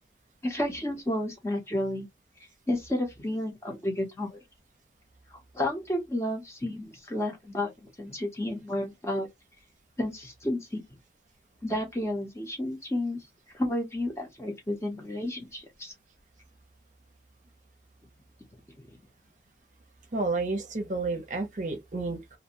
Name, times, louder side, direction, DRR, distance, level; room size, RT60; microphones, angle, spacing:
voice 1, 0.4-2.1 2.7-4.4 5.3-9.3 10.0-10.8 11.6-13.2 13.5-15.9, left 1 dB, 15° left, 0.7 m, -31 dB
voice 2, 20.1-22.4, right 3 dB, 45° right, 0.6 m, -31 dB
2.5 x 2.2 x 2.7 m
head